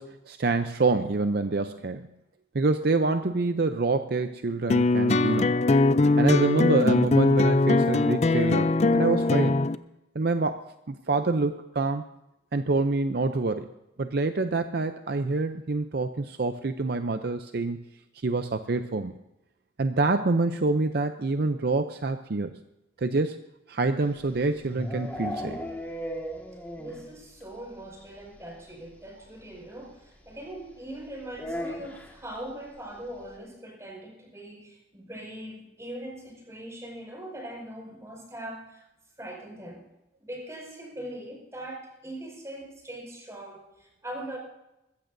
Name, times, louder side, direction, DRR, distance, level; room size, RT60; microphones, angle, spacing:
voice 1, 0.0-2.1 2.5-5.6 6.2-9.6 10.1-12.0 12.5-13.7 14.0-17.8 18.2-19.2 19.8-22.6 23.0-23.4 23.7-25.6, right 3 dB, 55° right, 8 dB, 0.6 m, -26 dB
sound 1, 4.7-9.7, left 2 dB, 35° left, 0.4 m, -21 dB
sound 2, 24.1-27.1 27.4-27.5 27.8-27.9 28.2-28.3 29.5-29.6 31.3-32.2, equal, 10° left, 1.8 m, -36 dB
voice 2, 26.7-38.8 39.2-39.8 40.2-44.4, right 1 dB, 15° right, 1 dB, 4.8 m, -41 dB
21.5 x 15.5 x 2.7 m, 0.91 s
head